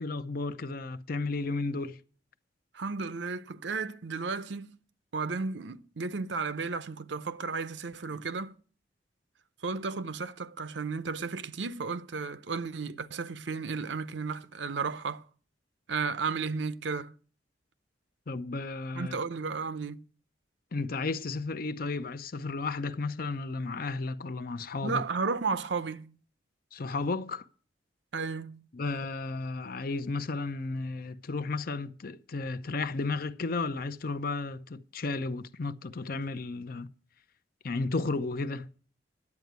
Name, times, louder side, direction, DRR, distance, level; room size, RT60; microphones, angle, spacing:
voice 1, 0.0-2.0 18.3-19.2 20.7-25.0 26.7-27.4 28.7-36.9 37.6-38.8, left 3 dB, 55° left, 0.6 m, -33 dB
voice 2, 2.7-4.8 5.1-8.5 9.6-15.2 15.9-17.1 18.9-20.0 24.8-26.1 28.1-28.6, right 4 dB, 80° right, 0.7 m, -33 dB
11.0 x 8.4 x 8.0 m
head